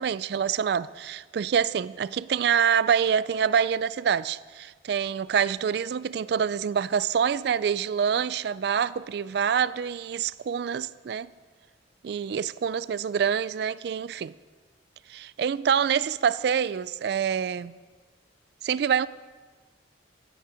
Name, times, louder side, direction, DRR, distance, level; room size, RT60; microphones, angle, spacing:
voice 1, 0.0-11.3 12.0-14.3 15.1-17.7 18.6-19.1, right 7 dB, 60° right, 0.3 m, -26 dB
16.5 x 9.3 x 5.1 m
head